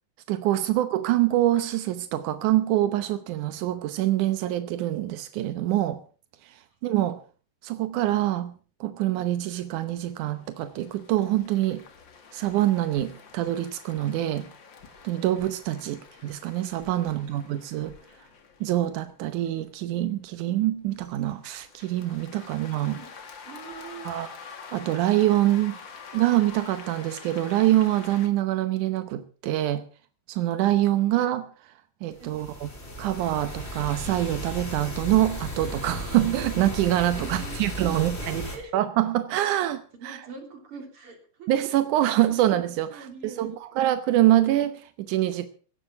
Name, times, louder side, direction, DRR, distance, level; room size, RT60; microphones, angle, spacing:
voice 1, 0.3-6.0 6.4-7.2 7.6-8.5 8.8-11.8 12.3-14.5 15.0-17.9 18.6-23.0 24.1-24.3 24.7-25.8 26.1-29.8 30.3-31.5 32.0-32.7 33.0-38.5 38.7-40.2 41.5-45.5, right 14 dB, 80° right, 11 dB, 1.8 m, -25 dB
sound 1, 9.5-28.3, left 5 dB, 45° left, 1.6 m, -47 dB
voice 2, 16.9-17.2 22.4-22.5 22.8-23.1 23.5-24.1 32.1-32.4 37.2-38.7 39.9-41.5 42.3-42.4 42.9-43.5, right 5 dB, 35° right, 4 dB, 3.7 m, -43 dB
sound 2, 32.1-38.6, equal, 15° left, 3.2 m, -35 dB
16.5 x 12.0 x 5.8 m, 0.40 s
omnidirectional pair, 4.8 m